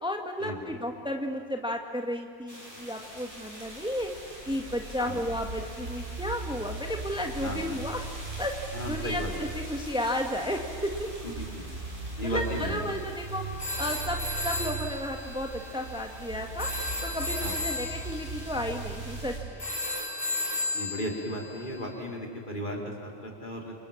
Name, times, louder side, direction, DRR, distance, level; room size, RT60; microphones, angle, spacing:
voice 1, 0.0-4.1 4.5-8.0 8.4-8.5 8.9-11.1 12.2-13.4 13.8-16.7 17.0-19.7, left 1 dB, 5° right, 3 dB, 1.7 m, -33 dB
sound 1, 2.5-19.4, equal, 50° right, 7.4 m, -47 dB
sound 2, 3.2-19.5, right 4 dB, 80° right, 1.7 m, -39 dB
voice 2, 8.7-9.3 11.2-11.7 12.2-13.0 17.4-17.6 20.7-23.7, equal, 50° left, 0 dB, 4.3 m, -35 dB
sound 3, 12.4-21.9, left 1 dB, 20° left, 4.6 m, -35 dB
29.0 x 27.0 x 7.3 m, 2.5 s
omnidirectional pair, 1.1 m